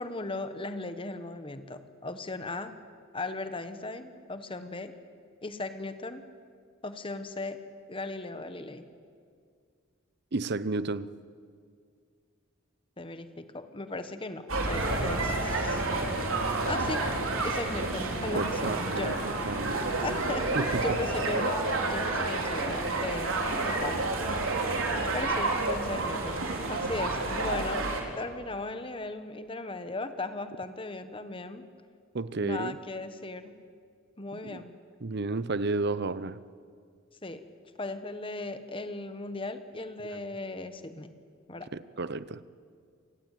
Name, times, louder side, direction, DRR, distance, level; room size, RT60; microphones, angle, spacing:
voice 1, 0.0-2.7 3.1-4.9 5.4-6.2 6.8-7.6 7.9-8.9 13.0-15.8 16.7-17.1 17.4-19.2 19.5-20.5 20.8-24.1 25.1-27.9 28.2-31.7 32.4-33.6 34.2-34.7 37.2-37.4 37.8-41.2 41.5-41.7, left 2 dB, 25° left, 1.3 m, -37 dB
voice 2, 10.3-11.1 18.3-19.8 20.6-20.8 32.1-32.8 34.4-34.6 35.0-36.4 41.7-42.4, right 3 dB, 55° right, 0.8 m, -32 dB
sound 1, 14.5-28.0, right 2 dB, 90° right, 3.8 m, -29 dB
27.5 x 19.0 x 9.2 m
head